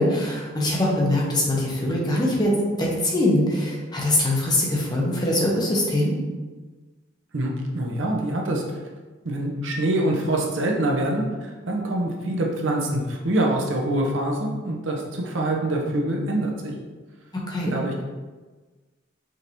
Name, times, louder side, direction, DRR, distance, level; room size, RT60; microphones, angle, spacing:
voice 1, 0.0-6.1 17.5-17.7, left 1 dB, 20° left, -3 dB, 0.8 m, -22 dB
voice 2, 7.3-8.6 9.2-16.7 17.6-18.0, right 1 dB, 75° right, 0 dB, 0.7 m, -25 dB
5.0 x 2.6 x 2.8 m, 1.3 s
head